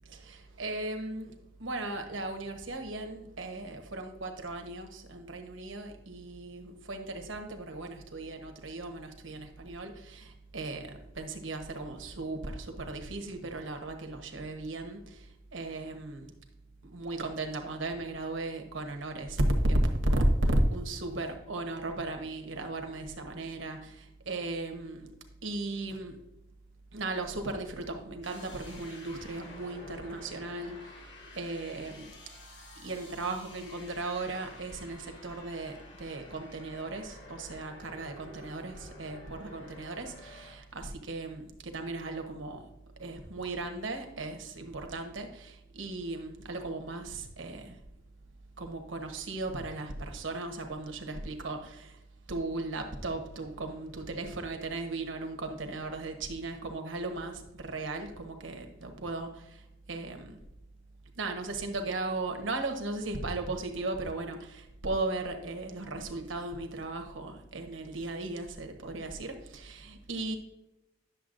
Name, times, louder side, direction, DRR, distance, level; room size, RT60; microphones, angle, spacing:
voice 1, 0.0-16.3 16.8-25.1 25.4-26.2 26.9-32.1 32.8-42.6 43.0-47.8 48.6-52.0 52.3-60.4 61.2-70.4, right 2 dB, 70° right, 5 dB, 1.1 m, -36 dB
sound 1, 28.2-40.6, left 2 dB, 65° left, 2.0 m, -51 dB
10.0 x 6.8 x 2.6 m, 0.91 s
head